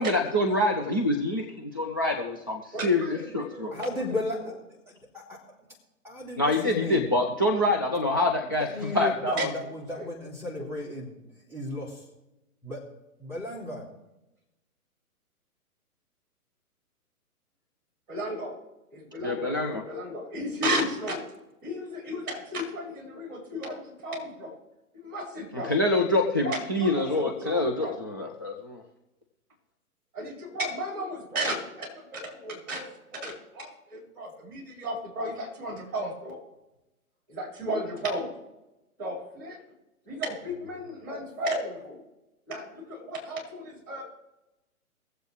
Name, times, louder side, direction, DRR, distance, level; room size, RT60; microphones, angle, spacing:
voice 1, 0.0-3.7 6.4-9.5 19.2-19.8 25.5-28.8, left 1 dB, 15° left, 2 dB, 0.4 m, -26 dB
voice 2, 2.7-4.2 9.3-9.5 9.9-10.1 18.1-18.6 18.9-21.3 21.6-24.5 25.0-25.7 26.4-27.9 30.1-36.4 37.3-38.3 39.0-39.6 40.1-42.0 42.5-44.0, equal, 35° right, -2 dB, 5.2 m, -34 dB
voice 3, 3.7-4.4 5.1-5.4 6.0-7.1 8.6-11.1 11.5-12.0 12.6-12.8 13.2-13.8, left 1 dB, 5° right, -5 dB, 2.7 m, -34 dB
22.5 x 7.8 x 3.3 m, 0.96 s
figure-of-eight pair, 125°, 45 cm